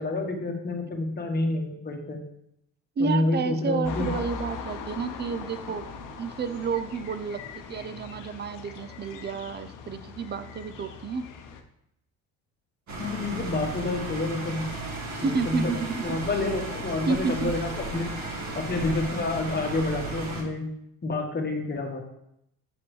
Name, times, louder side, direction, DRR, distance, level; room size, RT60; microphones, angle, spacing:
voice 1, 0.0-2.2 3.0-4.1 13.0-14.6 15.2-15.7 16.0-18.1 18.5-20.6 21.0-22.0, left 2 dB, 30° left, 2 dB, 1.3 m, -28 dB
voice 2, 3.0-5.9 6.2-11.3 15.1-16.0 17.1-17.5, right 5 dB, 30° right, 11 dB, 0.5 m, -30 dB
sound 1, 3.8-11.6, left 5 dB, 65° left, 0.8 m, -40 dB
sound 2, 12.9-20.4, right 2 dB, 50° right, 2.2 m, -35 dB
6.2 x 5.9 x 3.2 m, 0.78 s
supercardioid pair, 75°, 35 cm